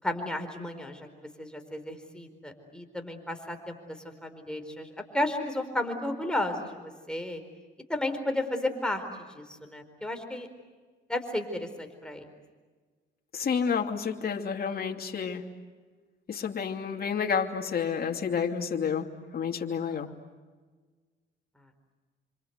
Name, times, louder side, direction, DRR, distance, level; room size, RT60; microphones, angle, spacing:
voice 1, 0.0-1.1 1.4-4.9 5.1-7.4 7.9-10.5 11.1-12.3 20.1-20.2, left 1 dB, 5° left, 5 dB, 4.5 m, -33 dB
voice 2, 13.3-15.5 16.3-20.1, left 6 dB, 50° left, 3 dB, 2.8 m, -30 dB
28.0 x 26.0 x 8.1 m, 1.4 s
cardioid pair, 90°, 20 cm